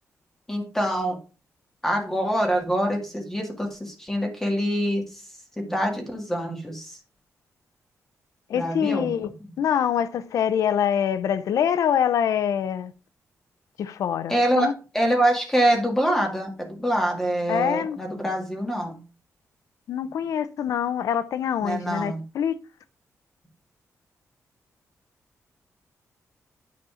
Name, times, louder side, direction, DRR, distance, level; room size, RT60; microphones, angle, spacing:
voice 1, 0.5-1.2 1.8-5.2 5.6-7.0 8.5-9.1 14.3-14.7 14.9-16.5 16.8-19.0 21.6-22.2, right 1 dB, 5° left, 2.0 m, -25 dB
voice 2, 8.5-9.3 9.6-12.9 13.8-14.7 17.5-18.0 19.9-22.5, left 9 dB, 80° left, 0.7 m, -25 dB
9.5 x 4.2 x 5.0 m
wide cardioid pair, 135°, 6 cm